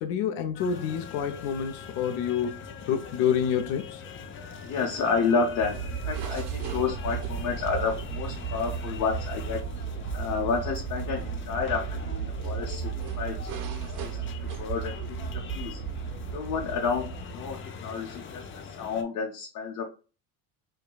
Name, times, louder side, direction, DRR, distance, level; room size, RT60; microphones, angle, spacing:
voice 1, 0.0-4.0, left 8 dB, 85° left, 0.7 m, -28 dB
sound 1, 0.5-19.0, left 6 dB, 30° left, 0.5 m, -43 dB
voice 2, 4.6-9.6 10.1-14.2 14.6-15.3 15.5-15.8 16.3-18.4 18.8-19.8, left 5 dB, 50° left, 0.8 m, -30 dB
sound 2, 5.5-17.7, right 7 dB, 55° right, 0.7 m, -34 dB
4.6 x 2.3 x 2.3 m
cardioid pair, 135°, 40 cm